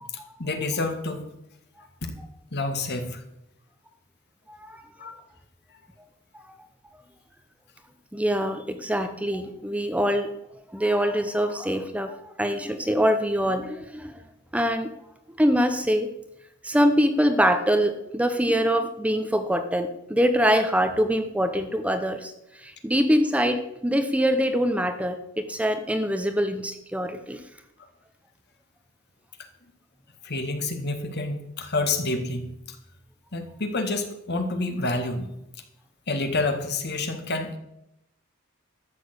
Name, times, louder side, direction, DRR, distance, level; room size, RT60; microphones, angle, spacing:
voice 1, 0.4-1.3 2.0-2.1 2.5-3.2 5.0-5.1 30.2-32.8 33.3-35.3 36.1-37.6, left 2 dB, 55° left, 6 dB, 1.9 m, -28 dB
voice 2, 4.5-4.9 8.1-10.3 10.7-14.2 14.5-14.9 15.4-16.1 16.6-22.3 22.6-27.4, equal, 5° right, 8 dB, 0.8 m, -24 dB
13.0 x 6.9 x 8.2 m, 0.84 s
head